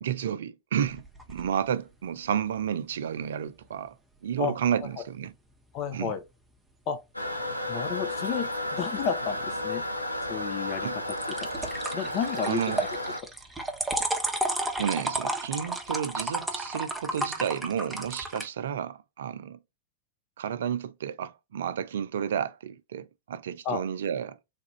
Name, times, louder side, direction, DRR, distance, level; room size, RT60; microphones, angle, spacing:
voice 1, 0.0-3.9 4.2-5.3 5.9-6.1 10.8-11.0 12.4-12.8 14.8-19.6 20.4-24.4, right 8 dB, 60° right, 0.4 m, -31 dB
sound 1, 0.8-1.5 11.1-18.5, right 2 dB, 5° right, 0.8 m, -32 dB
voice 2, 5.7-6.2 6.9-7.0 7.7-9.8 10.3-10.9 11.4-11.5 11.9-12.9 23.6-23.8, left 7 dB, 40° left, 0.6 m, -31 dB
Toilet flush, 7.1-13.2, left 1 dB, 90° left, 0.6 m, -33 dB
3.5 x 2.4 x 3.1 m
figure-of-eight pair, 90°, 0 cm